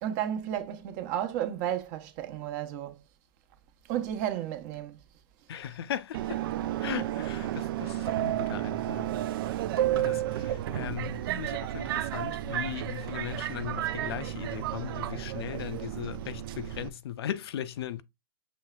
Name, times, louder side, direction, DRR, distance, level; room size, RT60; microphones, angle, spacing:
voice 1, 0.0-3.0 3.9-5.0, right 11 dB, 45° right, 1.0 m, -32 dB
voice 2, 5.5-6.4 6.8-9.1 9.9-18.0, left 10 dB, 75° left, 0.5 m, -38 dB
Subway metro underground, 6.1-16.9, right 13 dB, 65° right, 0.4 m, -32 dB
6.3 x 3.2 x 2.3 m
hypercardioid pair, 135°, 13 cm